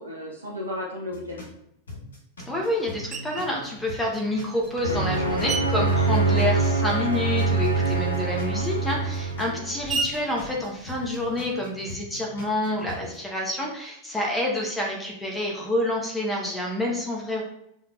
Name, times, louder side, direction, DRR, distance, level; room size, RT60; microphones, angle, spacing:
voice 1, 0.0-1.5 6.0-6.3 9.3-9.6, left 1 dB, 80° right, -2 dB, 0.6 m, -35 dB
sound 1, 1.1-1.6 1.9-5.6 5.9-9.6 9.9-13.2, left 2 dB, 65° left, 1.4 m, -42 dB
voice 2, 2.5-17.4, left 1 dB, 5° left, -2 dB, 0.9 m, -28 dB
Screech, 3.1-3.6 4.3-7.0 7.3-11.6, right 3 dB, 20° right, 0.3 m, -36 dB
sound 2, 4.8-9.9, right 3 dB, 85° left, 0.5 m, -24 dB
5.6 x 2.8 x 2.3 m, 0.78 s
figure-of-eight pair, 90°, 0 cm